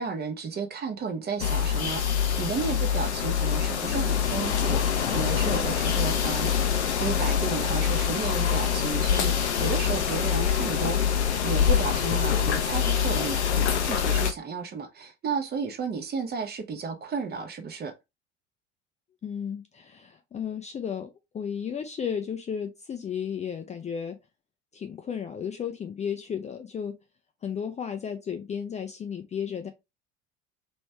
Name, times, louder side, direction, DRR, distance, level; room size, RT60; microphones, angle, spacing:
voice 1, 0.0-6.5 7.0-11.2 11.4-17.9, right 5 dB, 30° right, 0.9 m, -33 dB
sound 1, 1.4-14.3, left 8 dB, 80° left, 0.7 m, -25 dB
voice 2, 19.2-24.2 24.7-27.0 27.4-29.7, left 7 dB, 20° left, 0.5 m, -34 dB
3.1 x 3.1 x 3.4 m
figure-of-eight pair, 65°, 33 cm